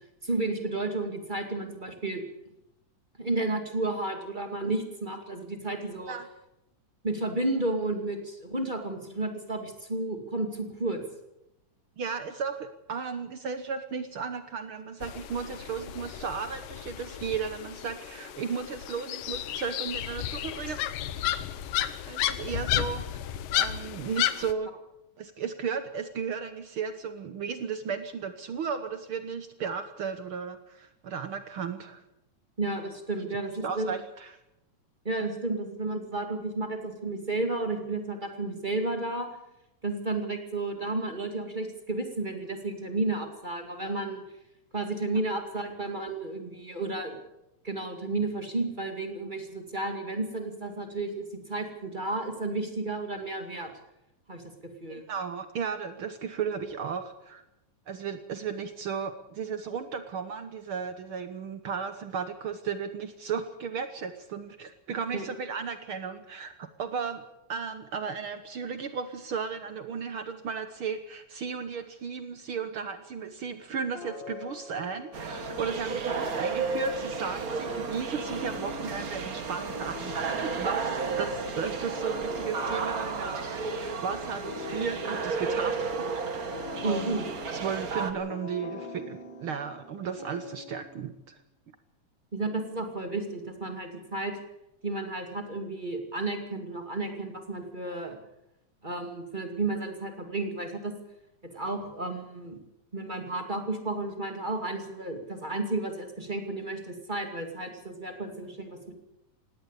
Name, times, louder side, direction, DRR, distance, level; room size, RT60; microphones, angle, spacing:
voice 1, 0.2-2.2 3.2-6.2 7.0-11.0 32.6-33.9 35.0-39.3 39.8-44.2 44.7-47.2 47.6-53.7 54.3-55.0 65.1-65.3 86.8-87.3 92.3-94.4 94.8-98.2 98.8-101.0 101.5-102.6 102.9-108.9, right 2 dB, 15° right, 5 dB, 2.0 m, -32 dB
voice 2, 12.0-20.8 22.1-23.2 23.5-24.7 25.2-32.0 33.6-34.4 54.9-57.4 57.9-67.2 67.5-86.2 86.8-87.2 87.5-91.4, right 6 dB, 70° right, 9 dB, 1.2 m, -35 dB
sound 1, 15.0-24.5, left 12 dB, 80° left, 2.6 m, -33 dB
sound 2, 73.9-91.1, left 5 dB, 40° left, 2.3 m, -44 dB
sound 3, 75.1-88.1, right 4 dB, 45° right, 1.2 m, -33 dB
18.5 x 17.5 x 8.4 m, 0.88 s
omnidirectional pair, 3.8 m